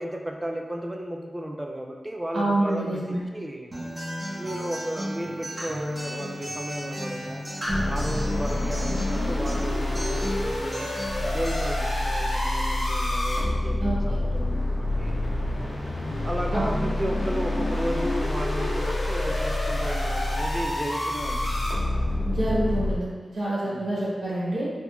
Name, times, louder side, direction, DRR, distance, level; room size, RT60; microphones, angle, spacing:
voice 1, 0.0-3.7 4.4-7.4 7.9-10.9 11.3-15.1 16.2-21.8 23.6-23.9, right 1 dB, 20° right, 2 dB, 0.3 m, -34 dB
voice 2, 2.3-3.2 13.8-14.0 16.5-16.7 22.2-24.7, right 1 dB, 75° right, -7 dB, 1.0 m, -27 dB
Acoustic guitar, 3.7-11.7, equal, 35° right, 1.1 m, -34 dB
sound 1, 7.7-22.9, left 1 dB, 75° left, 0.7 m, -27 dB
3.6 x 2.8 x 2.3 m, 1.4 s
wide cardioid pair, 100°, 0 cm